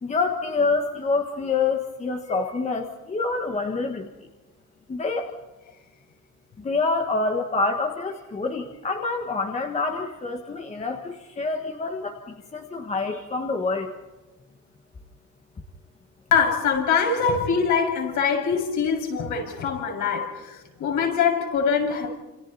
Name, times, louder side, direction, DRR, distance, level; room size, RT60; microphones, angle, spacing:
voice 1, 0.0-4.1 4.9-5.3 6.6-13.9, left 3 dB, 20° left, 1.6 m, -27 dB
voice 2, 16.3-22.1, left 6 dB, 55° left, 6.5 m, -23 dB
29.0 x 28.5 x 4.2 m
cardioid pair, 170°, 35 cm